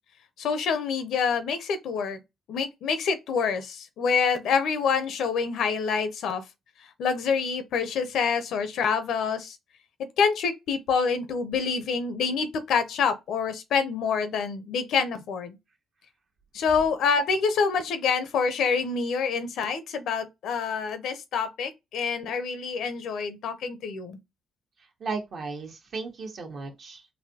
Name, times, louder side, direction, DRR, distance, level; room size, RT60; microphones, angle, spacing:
voice 1, 0.4-2.2 2.5-6.4 7.0-9.6 10.2-15.6 16.5-24.2, left 5 dB, 75° left, 0.6 m, -26 dB
voice 2, 25.0-27.1, right 4 dB, 55° right, 1.1 m, -35 dB
4.1 x 2.6 x 2.8 m
cardioid pair, 90°, 0 cm